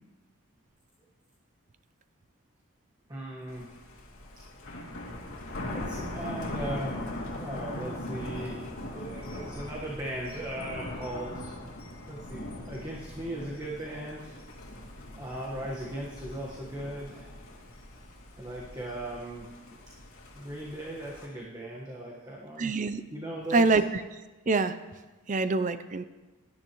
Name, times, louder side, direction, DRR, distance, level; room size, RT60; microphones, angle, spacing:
voice 1, 3.1-3.7 5.7-11.6 12.1-14.4 15.1-17.3 18.3-19.5 20.3-22.7 23.1-23.7, right 1 dB, 20° right, -4 dB, 1.3 m, -38 dB
Thunder, 3.5-21.3, left 1 dB, 80° left, 2.6 m, -40 dB
voice 2, 22.6-23.0 23.5-24.0 24.5-24.8 25.3-26.0, right 3 dB, 35° right, 12 dB, 0.5 m, -25 dB
17.5 x 10.5 x 3.1 m, 1.2 s
head